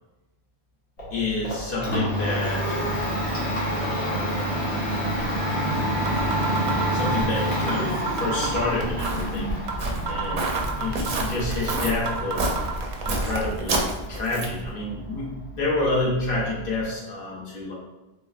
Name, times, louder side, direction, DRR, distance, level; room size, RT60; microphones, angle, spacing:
Domestic sounds home sounds, 1.0-16.8, equal, 85° left, 1.4 m, -29 dB
voice 1, 1.1-2.8 3.7-4.5 6.6-9.5 10.1-10.5 10.8-12.5 13.0-17.7, left 2 dB, 55° left, -4 dB, 0.9 m, -29 dB
sound 1, 5.7-5.8 6.1-7.2 7.7-9.2 9.7-9.8 10.1-11.2 11.7-11.8 12.1-13.1, right 5 dB, 90° right, 0.9 m, -30 dB
Walk footsteps, 8.4-14.7, right 2 dB, 55° right, 0.5 m, -29 dB
3.2 x 3.2 x 2.3 m, 1.1 s
omnidirectional pair, 1.1 m